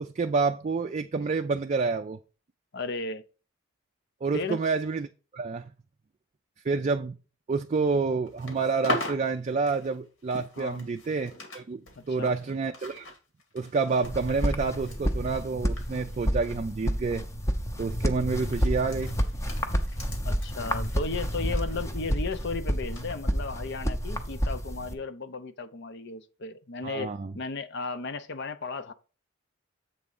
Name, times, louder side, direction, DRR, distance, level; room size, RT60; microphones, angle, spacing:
voice 1, 0.0-2.2 4.2-5.1 5.3-5.7 6.6-7.2 7.5-13.1 13.5-17.2 17.8-19.2 26.8-27.3, right 4 dB, 35° right, 0.4 m, -28 dB
voice 2, 2.7-3.2 4.3-4.6 10.6-10.9 12.0-12.4 20.2-27.1 27.3-28.9, left 3 dB, 60° left, 0.7 m, -35 dB
sound 1, 8.3-11.6 11.9-16.8 17.1-17.4 18.2-22.4 23.0-23.1, left 1 dB, 80° left, 2.4 m, -40 dB
sound 2, 14.0-24.9, equal, 15° left, 0.7 m, -30 dB
7.7 x 3.6 x 5.4 m
head